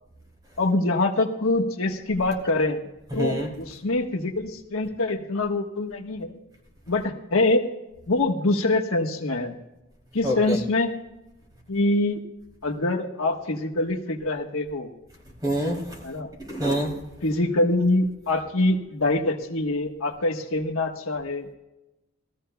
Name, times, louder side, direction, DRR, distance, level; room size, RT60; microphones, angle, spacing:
voice 1, 0.6-2.8 3.1-6.4 6.9-7.6 8.1-9.6 10.1-10.9 11.7-12.2 12.6-14.9 16.0-16.3 17.2-21.5, left 2 dB, 90° left, 2 dB, 1.3 m, -24 dB
voice 2, 3.1-3.5 10.2-10.6 15.4-16.0 16.4-17.0, equal, 20° right, -2 dB, 3.0 m, -26 dB
20.0 x 14.0 x 2.3 m, 0.98 s
head